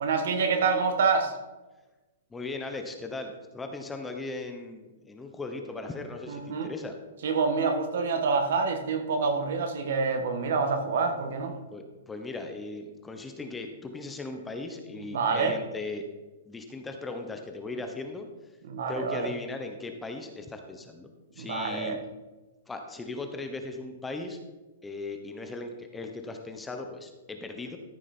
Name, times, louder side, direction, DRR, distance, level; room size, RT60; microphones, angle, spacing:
voice 1, 0.0-1.4 6.3-6.7 7.2-11.5 15.1-15.6 18.7-19.3 21.4-22.0, right 4 dB, 70° right, 6 dB, 1.6 m, -27 dB
voice 2, 2.3-7.0 11.7-16.0 16.5-18.3 18.9-22.0 22.7-24.4 24.8-27.8, left 3 dB, 10° left, 5 dB, 0.9 m, -38 dB
13.5 x 5.9 x 4.4 m, 1.1 s
hypercardioid pair, 155°, 0 cm